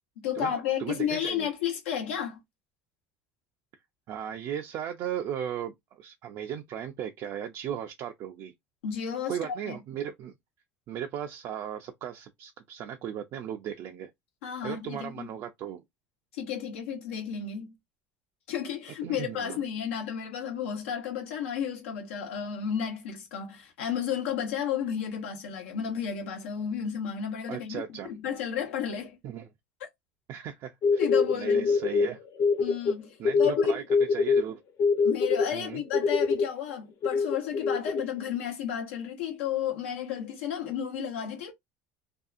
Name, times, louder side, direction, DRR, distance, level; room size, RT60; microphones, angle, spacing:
voice 1, 0.2-2.4 8.8-9.8 14.4-15.3 16.3-17.7 18.5-29.2 29.8-29.9 31.0-31.7 32.6-33.8 35.0-41.5, left 8 dB, 85° left, 0.9 m, -32 dB
voice 2, 0.8-1.5 4.1-8.5 9.3-10.3 10.9-14.1 14.6-15.8 19.0-19.6 27.5-28.1 29.2-29.5 30.3-31.0 31.3-32.2 33.2-34.6 35.5-35.8, right 9 dB, 55° right, 0.4 m, -36 dB
sound 1, 30.8-32.9 33.2-34.4 34.8-36.5 37.0-38.0, left 4 dB, 50° left, 0.6 m, -24 dB
2.6 x 2.3 x 2.4 m
supercardioid pair, 90°, 7 cm